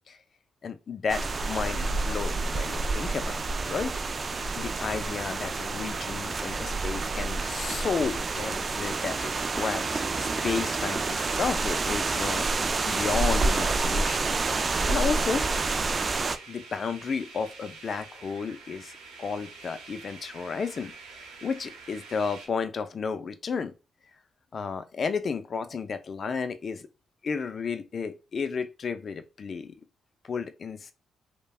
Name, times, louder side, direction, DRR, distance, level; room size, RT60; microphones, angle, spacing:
voice 1, 0.6-3.4 3.7-3.9 4.6-14.3 14.9-15.5 16.5-18.9 19.2-23.7 24.5-26.9 27.2-29.7 30.3-30.9, left 5 dB, 50° left, 0.4 m, -32 dB
sound 1, 1.1-16.4, right 3 dB, 45° right, 0.3 m, -28 dB
sound 2, 15.3-22.5, right 4 dB, 85° right, 0.8 m, -47 dB
3.2 x 2.1 x 2.3 m
supercardioid pair, 55°, 0 cm